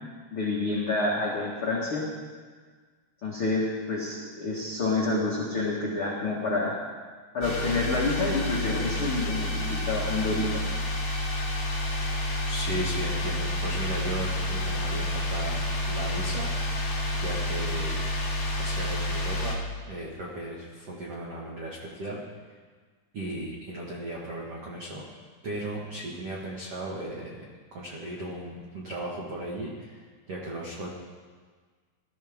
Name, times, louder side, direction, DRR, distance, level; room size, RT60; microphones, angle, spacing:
voice 1, 0.3-2.0 3.2-6.7 7.3-10.6, left 3 dB, 85° left, -5 dB, 1.1 m, -28 dB
sound 1, 7.4-19.5, left 1 dB, 40° left, 4.4 m, -29 dB
voice 2, 12.0-15.6 15.9-18.1 18.5-22.2 22.5-22.6 23.1-25.0 25.4-27.4 27.7-30.9, right 1 dB, 80° right, -4 dB, 1.3 m, -36 dB
19.5 x 13.0 x 3.6 m, 1.5 s
omnidirectional pair, 5.5 m